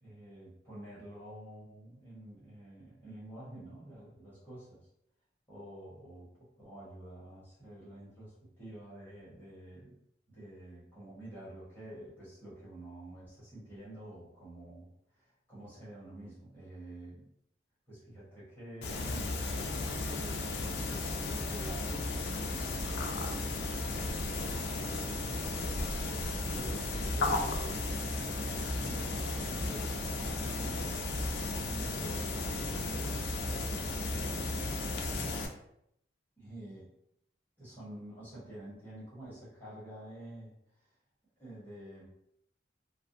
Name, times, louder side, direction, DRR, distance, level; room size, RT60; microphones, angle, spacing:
voice 1, 0.0-4.9 5.5-10.0 10.3-17.3 17.9-25.9 26.5-27.8 28.8-31.0 31.6-35.3 36.4-36.9 37.6-40.9 41.4-42.1, right 1 dB, 10° left, -10 dB, 1.0 m, -49 dB
sound 1, 18.8-35.5, left 2 dB, 70° left, 0.4 m, -34 dB
sound 2, 25.8-33.9, right 1 dB, 45° right, 0.4 m, -50 dB
2.4 x 2.2 x 2.6 m, 0.75 s
head